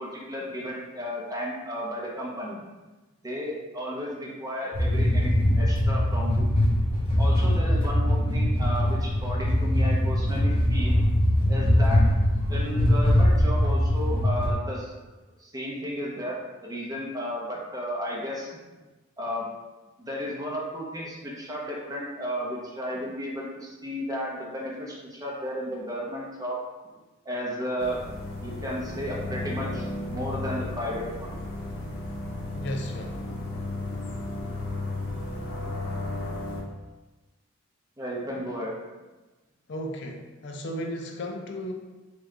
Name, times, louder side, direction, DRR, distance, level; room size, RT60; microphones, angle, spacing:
voice 1, 0.0-2.6 3.2-6.5 7.2-11.0 11.5-12.1 12.5-14.9 15.4-18.6 19.2-19.5 20.0-26.6 27.2-28.0 28.4-31.4 38.0-38.7, equal, 20° right, -3 dB, 0.8 m, -33 dB
sound 1, 4.7-14.5, left 1 dB, 25° left, 0.8 m, -22 dB
sound 2, 27.8-36.6, left 2 dB, 80° left, 0.9 m, -34 dB
voice 2, 32.5-33.2 39.7-41.7, equal, 60° left, 2 dB, 0.5 m, -34 dB
3.4 x 3.3 x 3.7 m, 1.2 s
head